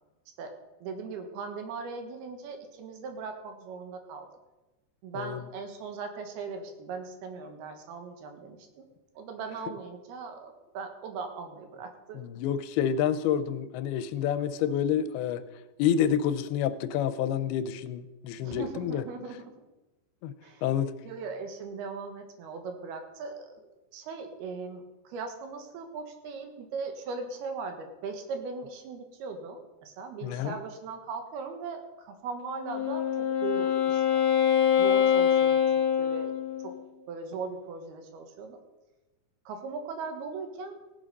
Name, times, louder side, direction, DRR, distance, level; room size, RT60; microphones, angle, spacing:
voice 1, 0.8-4.3 5.0-8.8 9.2-12.2 18.4-19.5 20.4-23.6 23.9-34.2 34.8-36.3 36.6-36.7 37.1-38.6 39.5-40.8, right 4 dB, 90° right, 5 dB, 3.3 m, -39 dB
voice 2, 12.2-15.4 15.8-19.0 20.2-20.3 20.6-20.9 30.2-30.5, left 9 dB, 85° left, 12 dB, 2.7 m, -28 dB
Wind instrument woodwind instrument, 32.5-36.9, left 9 dB, 65° left, 2.0 m, -25 dB
16.5 x 7.7 x 5.4 m, 1.1 s
omnidirectional pair, 4.4 m